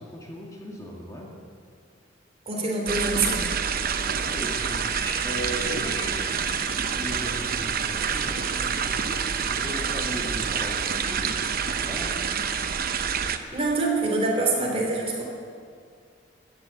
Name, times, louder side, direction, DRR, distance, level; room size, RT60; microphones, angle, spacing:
voice 1, 0.0-1.3 4.1-12.2, equal, 20° left, -2 dB, 1.9 m, -38 dB
voice 2, 2.4-3.4 13.5-15.2, right 3 dB, 30° right, -1 dB, 3.3 m, -25 dB
sound 1, 2.9-13.4, right 6 dB, 50° right, 0.8 m, -27 dB
sound 2, 3.7-11.1, left 1 dB, 60° left, 4.0 m, -44 dB
15.0 x 10.0 x 8.2 m, 2.2 s
head